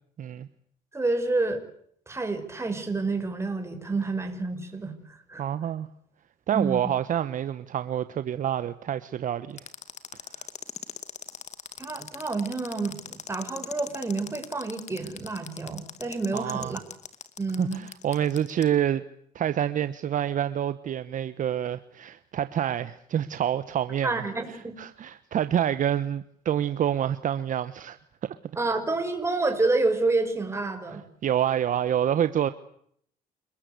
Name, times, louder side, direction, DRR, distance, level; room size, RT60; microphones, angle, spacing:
voice 1, 0.9-1.6 2.1-5.4 6.5-6.9 11.8-16.8 17.4-17.8 24.0-24.8 28.6-31.0, right 3 dB, 15° right, 6 dB, 6.0 m, -29 dB
voice 2, 5.4-5.9 6.5-9.6 10.3-10.5 16.3-16.7 17.6-19.0 19.3-28.0 31.2-32.5, right 10 dB, 50° right, 12 dB, 1.2 m, -27 dB
sound 1, 9.6-18.6, left 7 dB, 40° left, 2.3 m, -40 dB
29.0 x 20.5 x 8.3 m, 0.66 s
cardioid pair, 110°, 17 cm